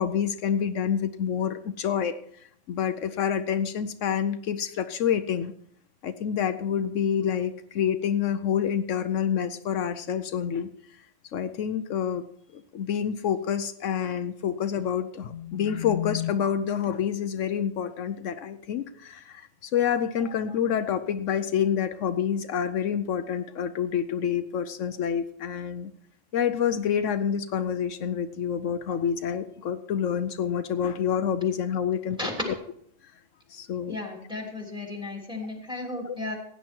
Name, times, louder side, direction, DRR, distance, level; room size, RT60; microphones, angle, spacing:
voice 1, 0.0-5.5 6.0-10.7 11.3-12.2 12.5-25.9 26.3-32.3 33.5-34.0 36.0-36.2, left 8 dB, 80° left, 10 dB, 1.0 m, -28 dB
voice 2, 33.8-36.4, left 2 dB, 5° right, 1 dB, 3.1 m, -34 dB
16.5 x 9.7 x 4.5 m, 0.67 s
omnidirectional pair, 1.3 m